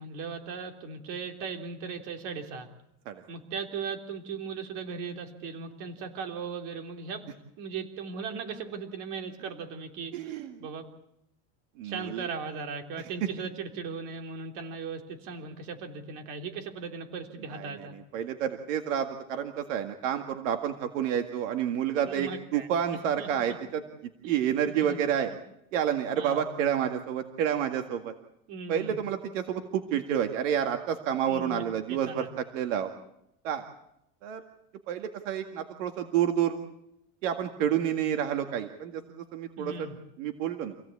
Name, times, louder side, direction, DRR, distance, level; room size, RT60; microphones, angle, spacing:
voice 1, 0.0-2.7 3.3-7.3 7.6-10.2 10.6-10.8 11.8-17.9 22.1-23.6 24.2-24.4 24.7-25.0 25.3-25.4 26.2-26.4 28.5-29.0 31.3-31.6 31.9-32.3 39.6-40.0, right 5 dB, 50° right, 4 dB, 3.5 m, -38 dB
voice 2, 10.1-10.7 11.8-12.3 17.5-17.9 18.1-23.8 24.3-25.3 25.7-28.1 28.7-32.9 33.4-33.7 34.2-34.4 34.9-36.6 37.2-39.7 40.2-40.7, right 9 dB, 85° right, 6 dB, 2.0 m, -29 dB
27.0 x 17.0 x 8.5 m, 0.81 s
cardioid pair, 165°, 37 cm